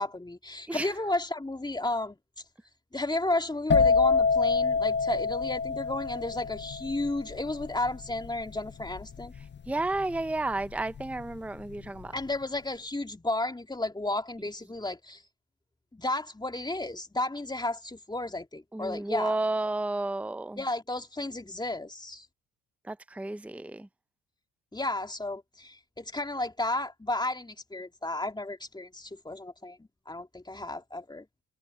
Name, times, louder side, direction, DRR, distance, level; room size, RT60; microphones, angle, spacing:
voice 1, 0.0-2.2 2.9-9.3 12.1-15.2 15.9-19.4 20.6-22.3 24.7-31.3, left 2 dB, 10° left, 2.9 m, -33 dB
sound 1, 3.7-11.3 11.6-12.0, left 4 dB, 30° left, 1.0 m, -27 dB
voice 2, 9.7-12.1 18.7-20.6 22.9-23.9, right 2 dB, 5° right, 0.9 m, -32 dB
hypercardioid pair, 55°, 34 cm